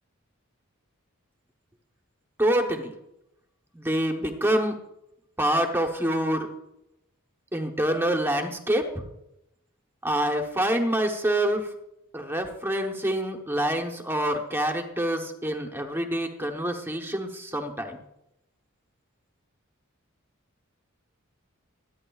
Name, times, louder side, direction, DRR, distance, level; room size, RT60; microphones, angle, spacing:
voice 1, 2.4-2.9 3.7-4.7 5.4-6.5 7.5-9.0 10.0-11.7 12.1-18.0, right 1 dB, 10° right, 4 dB, 0.9 m, -26 dB
23.5 x 9.5 x 2.4 m, 0.87 s
head